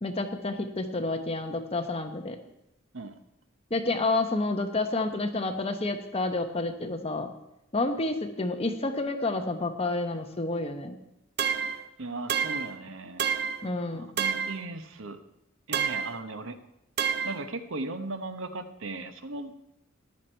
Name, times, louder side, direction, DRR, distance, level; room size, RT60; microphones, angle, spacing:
voice 1, 0.0-2.4 3.7-7.3 7.7-11.0 13.6-14.1, left 2 dB, 30° left, 6 dB, 1.1 m, -29 dB
sound 1, 11.4-11.8 12.3-12.7 13.2-13.6 14.2-14.6 15.7-16.2 17.0-17.4, right 7 dB, 50° right, 0.7 m, -28 dB
voice 2, 11.5-13.2 13.9-15.2 15.7-16.6 17.2-19.6, right 2 dB, 70° right, 9 dB, 1.0 m, -37 dB
14.0 x 10.5 x 4.5 m, 0.83 s
head